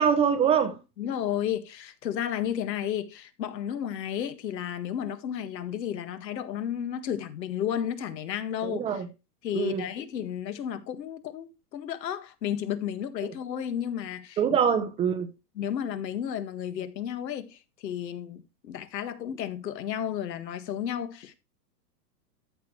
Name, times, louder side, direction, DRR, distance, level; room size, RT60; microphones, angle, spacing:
voice 1, 0.0-0.8 8.6-9.1 9.5-9.9 13.2-13.3 14.4-15.3, right 7 dB, 10° right, 0.5 m, -24 dB
voice 2, 1.0-9.0 9.4-14.4 15.6-21.3, left 9 dB, 90° left, 1.7 m, -32 dB
13.5 x 6.1 x 3.1 m
supercardioid pair, 150°, 49 cm